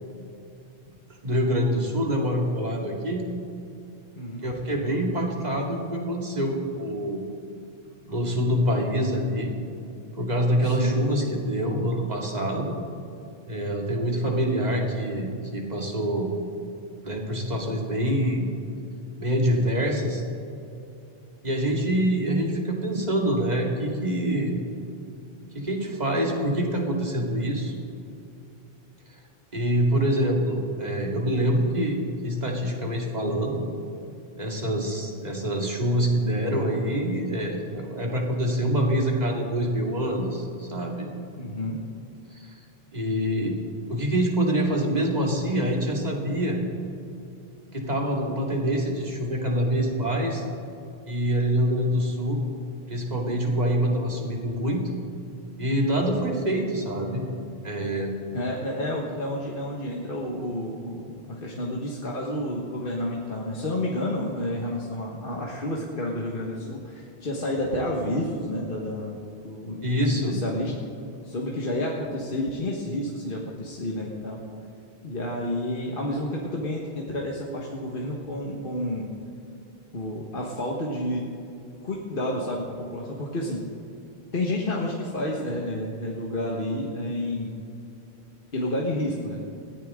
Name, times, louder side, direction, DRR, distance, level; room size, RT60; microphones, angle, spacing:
voice 1, 1.2-3.3 4.4-7.2 8.1-9.5 10.2-12.7 13.5-16.3 17.0-18.4 19.2-20.2 21.4-24.6 25.5-27.7 29.5-33.6 34.4-41.1 42.3-42.5 42.9-43.6 43.9-46.6 47.7-50.4 51.1-52.4 52.9-54.8 55.6-57.2 57.6-58.2 69.8-70.4, equal, 40° right, 0 dB, 2.4 m, -25 dB
voice 2, 10.6-11.0 21.8-22.1 41.4-41.8 55.9-56.2 58.3-69.2 69.4-70.7 71.2-74.4 75.0-79.1 79.9-81.3 81.8-83.6 84.3-87.5 88.5-89.4, left 1 dB, 60° left, -2 dB, 1.6 m, -30 dB
20.0 x 15.0 x 3.7 m, 2.6 s
omnidirectional pair, 1.0 m